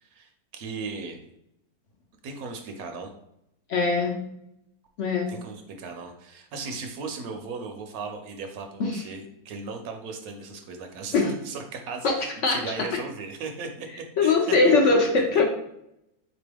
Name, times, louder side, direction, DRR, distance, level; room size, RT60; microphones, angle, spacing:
voice 1, 0.0-1.2 2.2-3.1 5.3-13.9 14.2-14.9, right 4 dB, 75° right, 5 dB, 1.0 m, -37 dB
voice 2, 3.7-4.1 5.0-5.3 8.8-9.0 11.1-11.3 12.0-12.2 12.4-12.6 14.2-15.4, left 3 dB, 65° left, 1 dB, 0.8 m, -21 dB
3.9 x 3.0 x 3.3 m, 0.80 s
omnidirectional pair, 1.6 m